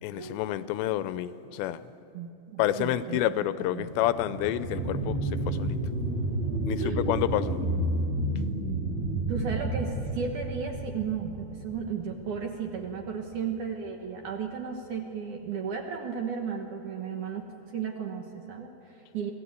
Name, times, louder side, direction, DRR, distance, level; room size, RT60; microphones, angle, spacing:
voice 1, 0.0-1.8 2.6-5.8 6.7-7.6, left 12 dB, 85° left, 14 dB, 2.9 m, -29 dB
voice 2, 2.1-3.3 3.7-3.9 6.8-7.1 7.6-8.0 9.3-19.3, right 6 dB, 65° right, 3 dB, 2.0 m, -34 dB
sound 1, 3.7-12.7 13.1-13.2, right 1 dB, 85° right, 9.7 m, -31 dB
25.0 x 15.5 x 8.3 m, 2.7 s
omnidirectional pair, 5.0 m